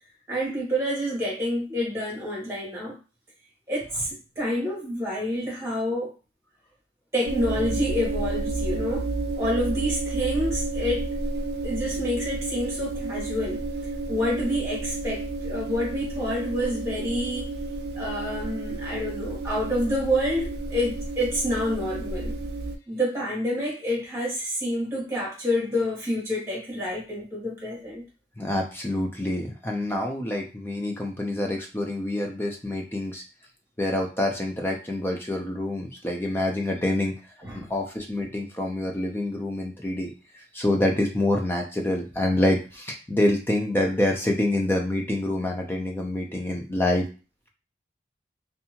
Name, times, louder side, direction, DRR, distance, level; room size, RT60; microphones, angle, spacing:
voice 1, 0.3-3.0 3.7-6.1 7.1-9.1 9.4-11.1 11.6-13.6 14.1-17.5 17.9-22.3 22.9-28.0 37.4-37.7, equal, 15° right, -4 dB, 1.2 m, -28 dB
sound 1, 7.2-22.7, right 2 dB, 55° right, 0.4 m, -31 dB
voice 2, 28.4-33.2 33.8-37.1 37.5-47.1, left 1 dB, 10° left, 1 dB, 0.5 m, -26 dB
2.7 x 2.4 x 2.8 m, 0.33 s
head